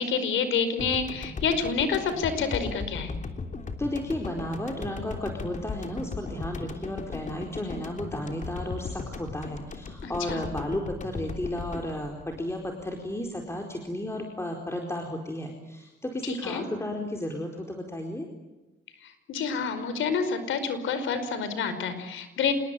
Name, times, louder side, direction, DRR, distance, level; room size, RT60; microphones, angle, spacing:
voice 1, 0.0-3.1 10.0-10.4 16.3-16.6 19.0-22.5, left 5 dB, 80° left, 11 dB, 5.1 m, -28 dB
sound 1, 0.8-13.3, left 4 dB, 40° left, 3.2 m, -37 dB
voice 2, 3.8-18.3, left 1 dB, 15° left, 2 dB, 4.5 m, -33 dB
27.5 x 21.5 x 9.1 m, 1.1 s
cardioid pair, 90°, 20 cm